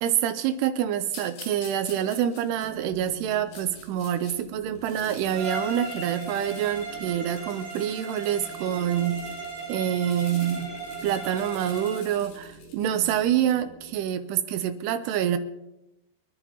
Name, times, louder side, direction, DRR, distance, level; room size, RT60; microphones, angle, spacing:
voice 1, 0.0-9.2 9.7-10.7 11.0-15.4, right 10 dB, 85° right, 9 dB, 2.5 m, -26 dB
sound 1, 1.1-4.4 4.7-13.4, left 4 dB, 90° left, 5.4 m, -48 dB
sound 2, 2.6-14.0, right 3 dB, 55° left, 6.8 m, -48 dB
Bowed string instrument, 5.3-12.1, right 4 dB, 25° right, 4.1 m, -37 dB
25.5 x 11.0 x 2.9 m, 0.93 s
omnidirectional pair, 5.2 m